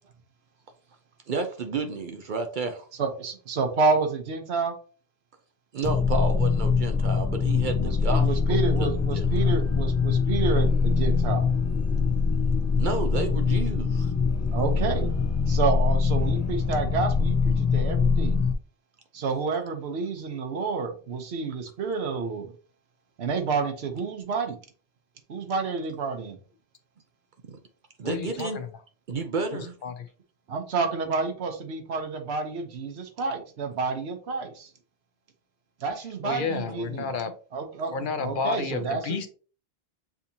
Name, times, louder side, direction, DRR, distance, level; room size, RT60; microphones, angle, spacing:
voice 1, 1.3-2.9 5.7-8.9 9.1-9.5 12.8-14.1 27.5-27.6 28.0-28.6 29.1-29.7, right 4 dB, 55° right, 5 dB, 0.7 m, -31 dB
voice 2, 3.0-4.7 7.8-11.5 14.5-15.1 15.5-18.4 19.1-22.5 23.2-24.6 25.3-26.4 30.5-34.7 35.8-37.1 37.5-39.2, right 4 dB, 85° right, 5 dB, 1.1 m, -29 dB
sound 1, 5.8-18.5, left 5 dB, 25° left, 0.3 m, -23 dB
voice 3, 28.0-28.7 29.8-30.0 36.2-37.3 37.9-39.3, left 5 dB, 60° left, 9 dB, 0.7 m, -31 dB
6.9 x 2.8 x 2.7 m, 0.39 s
omnidirectional pair, 1.0 m